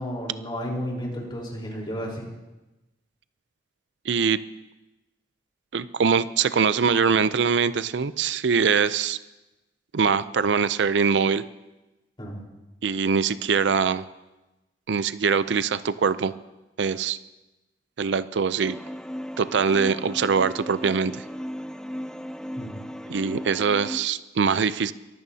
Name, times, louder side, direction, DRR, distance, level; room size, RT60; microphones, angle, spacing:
voice 1, 0.0-2.3 12.2-12.4 22.6-22.8, equal, 30° left, -2 dB, 4.1 m, -32 dB
voice 2, 4.1-4.4 5.7-9.2 9.9-11.4 12.8-14.1 14.9-16.3 16.8-17.2 18.0-18.8 19.4-21.2 23.1-24.9, right 6 dB, 90° right, 14 dB, 0.5 m, -23 dB
sound 1, 18.6-24.0, equal, 5° left, 0.4 m, -36 dB
23.0 x 15.0 x 2.8 m, 1.0 s
head